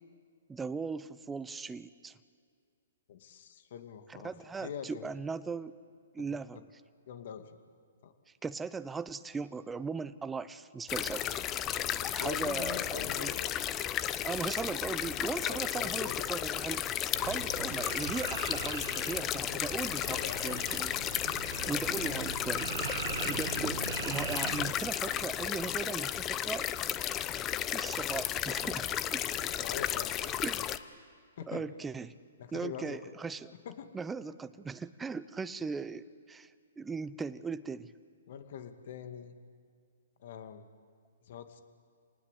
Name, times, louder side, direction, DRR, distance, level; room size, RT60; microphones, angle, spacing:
voice 1, 0.5-2.1 4.1-5.7 6.1-6.6 8.4-11.4 12.1-13.3 14.2-16.9 17.2-20.9 21.7-22.7 23.2-26.7 27.7-29.5 30.4-30.7 31.5-32.1 32.5-33.5 33.9-36.5 36.8-37.9, right 5 dB, 10° right, 14 dB, 0.7 m, -38 dB
voice 2, 3.1-4.3 4.6-5.1 6.3-6.4 7.1-7.6 8.0-8.1 11.0-11.2 11.9-13.6 15.4-16.3 19.5-20.6 22.1-22.3 29.6-30.3 31.4-31.7 32.4-33.1 33.7-33.9 38.3-39.4 40.2-40.6 41.3-41.6, left 8 dB, 55° left, 8 dB, 2.2 m, -43 dB
sound 1, 10.9-30.8, left 11 dB, 25° left, 0.8 m, -34 dB
sound 2, 17.1-24.7, right 8 dB, 65° right, 1.1 m, -40 dB
28.0 x 19.0 x 8.4 m, 2.2 s
hypercardioid pair, 140°, 0 cm